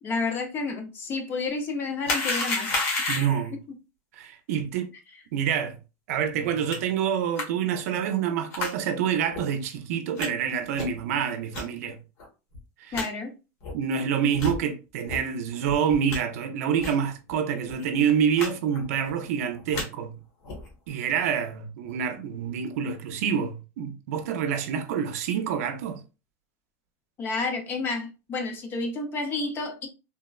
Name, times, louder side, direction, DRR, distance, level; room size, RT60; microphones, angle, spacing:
voice 1, 0.0-3.1 12.9-13.4 27.2-29.9, left 3 dB, 25° left, 0.5 m, -30 dB
sound 1, 2.0-3.5 6.7-6.8 7.4-7.5 8.5-8.7 9.3-9.4 10.2-10.3 10.7-11.0 11.5-11.6 12.2-12.3 12.5-12.6 12.9-13.1 13.6-13.7 14.3-14.6 15.1-15.2 15.7-16.2 16.8-17.0 17.3-17.4 17.7-17.8 18.4-18.5 18.7-19.1 19.5-19.9 20.4-20.7, left 3 dB, 60° left, 1.2 m, -30 dB
voice 2, 3.1-3.5 4.1-4.9 5.3-5.8 6.1-12.0 12.8-13.1 13.7-20.2 20.9-26.0, right 8 dB, 70° right, 0.5 m, -27 dB
3.3 x 2.1 x 2.2 m
supercardioid pair, 160°, 8 cm